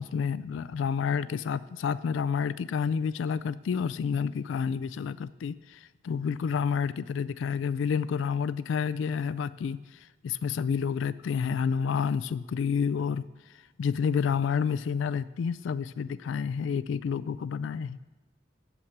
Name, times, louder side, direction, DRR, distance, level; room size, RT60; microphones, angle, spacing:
voice 1, 0.0-9.8 10.2-13.2 13.8-18.0, left 6 dB, 90° left, 15 dB, 0.3 m, -29 dB
8.6 x 7.2 x 6.6 m, 1.1 s
head